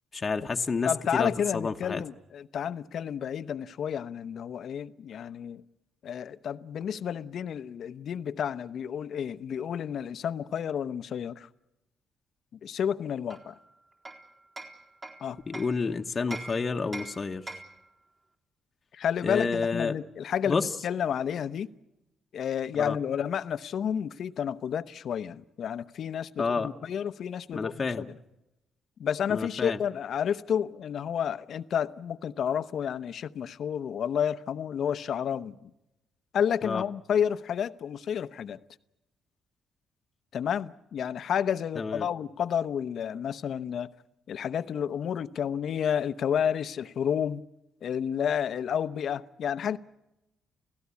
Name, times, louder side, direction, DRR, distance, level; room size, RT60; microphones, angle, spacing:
voice 1, 0.1-2.0 15.5-17.5 19.2-20.0 20.4-20.7 22.8-23.0 26.4-26.7 27.5-28.1 29.3-29.8 36.6-36.8 41.8-42.1, left 4 dB, 35° left, 1.1 m, -29 dB
voice 2, 0.8-5.6 6.0-11.5 12.6-13.5 15.2-15.4 18.9-21.7 22.3-28.0 29.0-35.5 36.3-38.6 40.3-43.9 44.3-47.4 47.8-49.8, left 8 dB, 65° left, 0.9 m, -30 dB
Hammer, 13.3-15.8 16.3-17.9, right 2 dB, 30° right, 3.9 m, -43 dB
29.5 x 16.5 x 8.4 m
cardioid pair, 90°, 0 cm